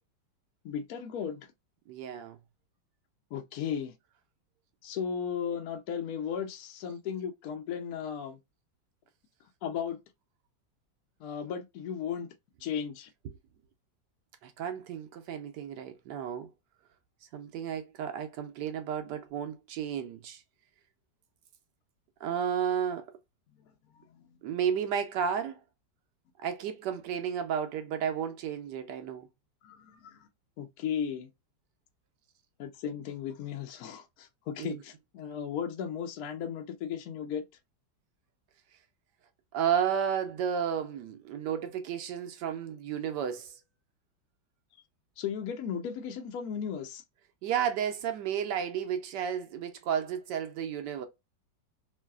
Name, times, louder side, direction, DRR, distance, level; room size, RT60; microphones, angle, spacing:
voice 1, 0.6-1.5 3.3-3.9 4.8-8.4 9.6-10.0 11.2-12.3 12.6-13.1 24.1-24.2 29.6-30.3 30.6-31.3 32.6-37.4 45.2-47.0, left 8 dB, 70° left, 0.9 m, -35 dB
voice 2, 1.9-2.4 13.2-13.4 14.4-16.5 17.3-20.4 22.2-23.2 24.4-25.6 26.4-29.3 34.6-34.8 39.5-43.6 47.4-51.1, right 8 dB, 75° right, 1.1 m, -32 dB
3.1 x 2.7 x 2.2 m
omnidirectional pair, 2.0 m